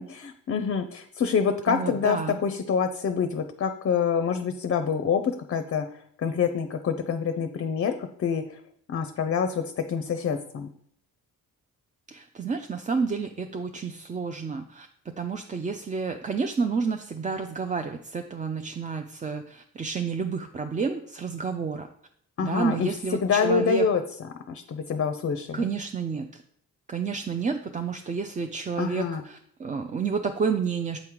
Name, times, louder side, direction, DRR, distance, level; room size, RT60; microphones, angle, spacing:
voice 1, 0.0-5.9 6.2-8.6 8.9-10.7 22.4-24.0 24.5-25.6 28.8-29.2, left 6 dB, 40° left, 8 dB, 0.5 m, -26 dB
voice 2, 1.7-2.4 12.1-21.9 22.4-23.9 25.5-26.4 26.9-31.0, right 5 dB, 25° right, 6 dB, 0.3 m, -30 dB
7.8 x 3.7 x 4.6 m, 0.66 s
cardioid pair, 105°, 34 cm